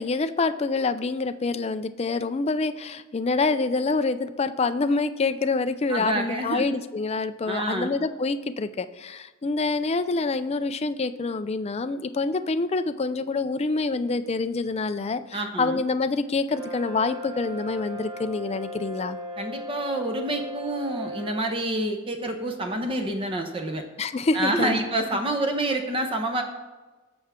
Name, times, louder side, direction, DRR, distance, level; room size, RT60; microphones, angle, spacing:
voice 1, 0.0-19.2 24.0-24.8, left 3 dB, 30° left, 10 dB, 0.4 m, -26 dB
voice 2, 5.9-6.7 7.5-8.0 15.3-15.8 19.4-23.8 24.3-26.4, right 1 dB, 25° right, 4 dB, 1.0 m, -28 dB
Brass instrument, 16.5-21.4, left 1 dB, 90° right, 2.5 m, -36 dB
18.0 x 6.9 x 3.7 m, 1.2 s
head